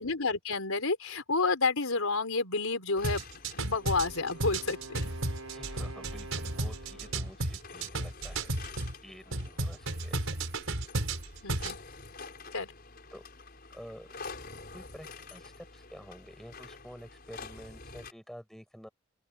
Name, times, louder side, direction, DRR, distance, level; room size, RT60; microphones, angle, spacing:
voice 1, 0.0-3.3 3.5-5.1 11.4-11.8 12.5-12.7, left 3 dB, 80° left, 4.0 m, -30 dB
sound 1, 3.0-18.1, left 4 dB, 45° left, 5.9 m, -48 dB
sound 2, 3.0-8.9 9.3-11.8, right 2 dB, 70° right, 5.3 m, -33 dB
Wind instrument woodwind instrument, 3.6-7.4, right 2 dB, 90° right, 6.1 m, -47 dB
voice 2, 5.5-8.5 9.0-10.3 13.1-13.2 13.7-14.1 14.7-18.9, equal, ahead, 6.7 m, -49 dB
open air
head